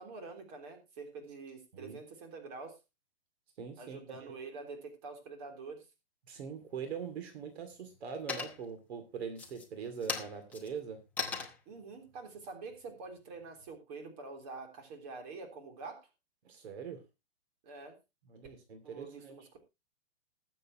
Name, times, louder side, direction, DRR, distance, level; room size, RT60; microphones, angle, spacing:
voice 1, 0.0-2.8 3.8-5.9 11.6-16.1 17.6-18.0 18.8-19.6, right 4 dB, 35° right, 4 dB, 3.4 m, -46 dB
voice 2, 3.6-4.3 6.3-11.0 16.4-17.0 18.3-19.3, right 6 dB, 65° right, 7 dB, 2.6 m, -42 dB
sound 1, 6.6-7.2 7.6-8.0 8.3-8.9 9.3-13.7, left 4 dB, 5° left, 0.9 m, -41 dB
20.5 x 7.6 x 2.9 m, 0.25 s
hypercardioid pair, 165°, 34 cm